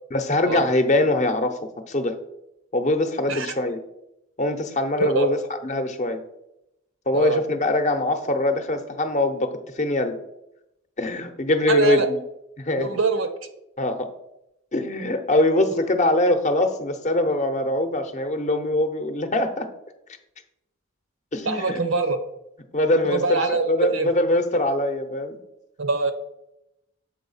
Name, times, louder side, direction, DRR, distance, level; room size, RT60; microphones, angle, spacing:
voice 1, 0.1-1.6 1.9-2.2 2.7-3.8 4.4-5.4 5.6-6.2 7.1-10.2 11.0-12.2 12.6-12.9 13.8-14.1 14.7-19.7 21.3-21.8 22.7-25.4, left 1 dB, 35° left, 7 dB, 0.8 m, -23 dB
voice 2, 5.0-5.3 7.1-7.4 11.7-12.1 12.8-13.3 21.4-22.2 23.0-24.1 25.8-26.1, right 3 dB, 70° right, 9 dB, 0.9 m, -23 dB
7.6 x 4.2 x 5.5 m, 0.85 s
head